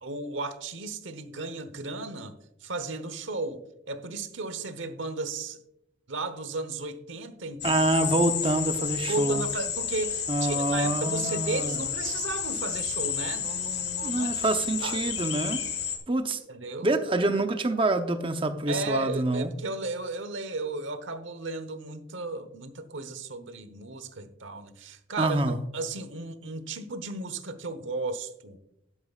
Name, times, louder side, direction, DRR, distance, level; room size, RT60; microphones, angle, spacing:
voice 1, 0.0-5.6 6.1-7.8 9.1-14.4 14.8-15.1 16.5-16.9 18.7-28.6, right 3 dB, 80° right, 12 dB, 1.0 m, -35 dB
sound 1, 7.6-16.0, left 8 dB, 55° left, 1.6 m, -31 dB
voice 2, 7.6-9.4 10.3-11.8 14.0-15.6 16.1-16.4 16.8-19.5 25.2-25.6, right 2 dB, 25° right, 7 dB, 0.8 m, -26 dB
11.5 x 11.0 x 2.4 m, 0.80 s
head